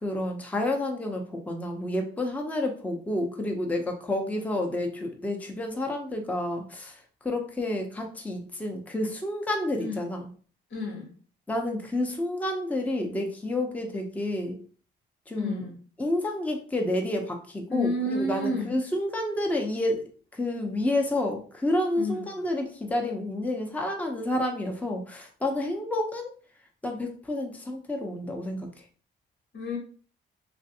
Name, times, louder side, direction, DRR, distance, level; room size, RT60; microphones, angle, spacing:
voice 1, 0.0-7.0 7.2-10.2 11.5-14.6 15.3-15.6 16.0-20.0 20.3-26.3 26.8-28.7, left 1 dB, 5° left, 2 dB, 0.6 m, -29 dB
voice 2, 9.7-10.1 10.7-11.1 15.3-15.7 17.7-18.7 22.0-22.3 29.5-29.8, left 1 dB, 80° left, -1 dB, 1.4 m, -30 dB
3.2 x 2.4 x 2.7 m, 0.43 s
cardioid pair, 90°, 20 cm